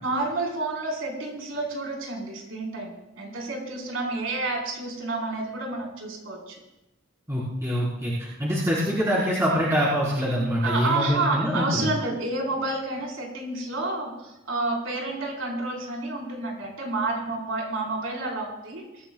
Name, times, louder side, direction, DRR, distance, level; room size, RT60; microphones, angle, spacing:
voice 1, 0.0-6.6 10.6-19.1, right 2 dB, 80° right, -1 dB, 4.6 m, -30 dB
voice 2, 7.3-11.9, equal, 15° right, -9 dB, 4.2 m, -25 dB
23.5 x 14.5 x 2.4 m, 0.93 s
head